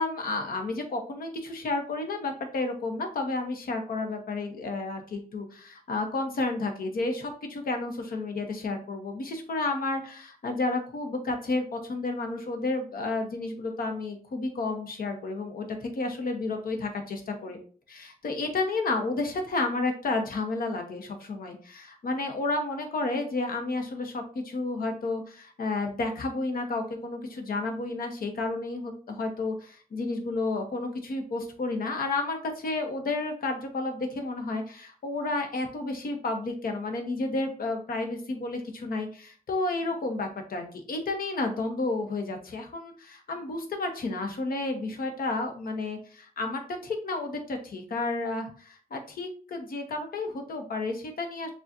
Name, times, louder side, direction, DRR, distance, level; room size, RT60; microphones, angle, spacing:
voice 1, 0.0-17.6 17.9-51.5, left 3 dB, 80° left, 4 dB, 0.9 m, -31 dB
7.0 x 2.4 x 2.6 m, 0.42 s
cardioid pair, 75°, 15 cm